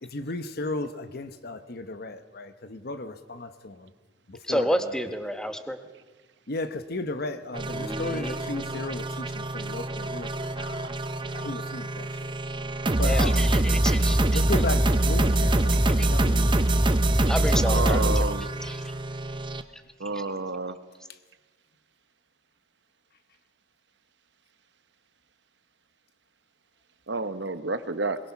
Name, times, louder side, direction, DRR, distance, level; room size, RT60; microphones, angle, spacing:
voice 1, 0.0-3.9 4.3-5.0 6.5-10.9 11.3-12.4 12.9-13.5 14.3-16.9, left 2 dB, 55° left, 1.0 m, -35 dB
voice 2, 4.4-5.8 7.7-8.7 13.0-14.4 16.0-16.1 17.1-18.9 20.1-20.2, equal, 5° left, 1.1 m, -31 dB
sound 1, 7.5-19.6, right 1 dB, 25° right, 0.8 m, -24 dB
voice 3, 17.7-18.5 20.0-20.8 27.1-28.2, right 3 dB, 65° right, 1.0 m, -29 dB
22.0 x 21.5 x 5.9 m
head